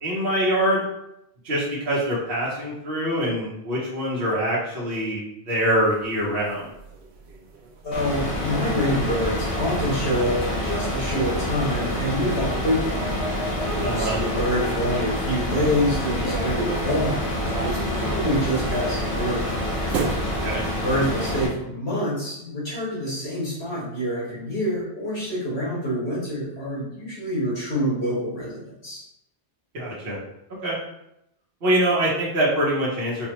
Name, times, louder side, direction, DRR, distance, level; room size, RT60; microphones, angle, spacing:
voice 1, 0.0-0.9 1.4-6.7 13.8-14.2 20.4-20.6 29.7-30.2 30.6-30.8 31.6-33.3, right 1 dB, 65° right, -6 dB, 1.2 m, -24 dB
sound 1, 5.6-15.5 16.2-20.2, right 3 dB, 80° right, 0.9 m, -35 dB
voice 2, 7.8-13.1 13.7-19.5 20.8-29.0, equal, 75° left, -6 dB, 1.7 m, -26 dB
sound 2, 7.9-21.5, left 1 dB, 90° left, 1.2 m, -27 dB
4.3 x 2.3 x 3.0 m, 0.81 s
omnidirectional pair, 1.1 m